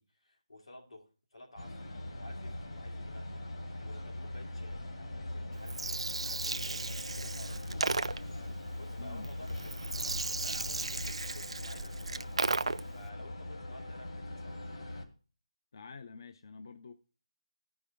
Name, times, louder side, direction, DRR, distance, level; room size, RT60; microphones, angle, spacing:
voice 1, 0.0-1.8 2.2-3.4 3.8-4.8 5.1-8.2 8.8-14.6, left 1 dB, 90° left, 2.3 m, -53 dB
sound 1, 1.6-15.0, left 1 dB, 65° left, 1.9 m, -41 dB
Gurgling, 5.5-13.0, right 3 dB, 70° right, 0.4 m, -36 dB
voice 2, 15.7-16.9, left 5 dB, 40° left, 0.4 m, -48 dB
13.0 x 5.3 x 3.4 m
figure-of-eight pair, 165°, 3 cm